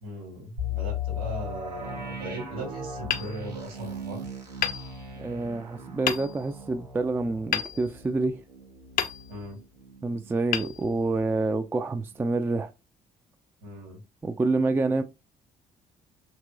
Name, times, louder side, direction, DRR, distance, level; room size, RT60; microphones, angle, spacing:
voice 1, 0.0-4.3 9.3-9.6 13.6-14.0, right 1 dB, 70° right, 1.6 m, -38 dB
sound 1, 0.6-10.3 10.6-10.7 11.3-11.5, left 3 dB, 85° right, 0.6 m, -37 dB
Hammer, 3.1-4.1 4.6-5.5 6.1-6.7 7.5-8.5 8.9-9.7 10.5-11.5, left 9 dB, 45° left, 0.5 m, -33 dB
voice 2, 5.2-8.4 10.0-12.7 14.2-15.0, right 3 dB, 10° right, 0.3 m, -27 dB
2.9 x 2.9 x 2.2 m
figure-of-eight pair, 45°, 20 cm